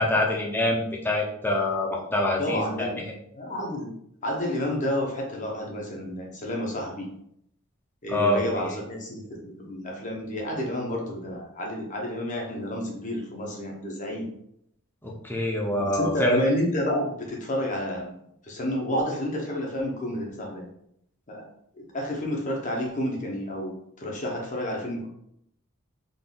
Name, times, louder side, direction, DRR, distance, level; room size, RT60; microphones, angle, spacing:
voice 1, 0.0-2.9 8.1-8.7 15.0-16.4, left 1 dB, 10° left, -2 dB, 0.7 m, -25 dB
voice 2, 2.4-4.0 4.2-7.1 8.0-14.3 15.8-18.2 18.4-20.7 21.3-21.5 21.7-25.1, left 1 dB, 40° left, -1 dB, 1.0 m, -30 dB
3.9 x 2.6 x 3.8 m, 0.73 s
head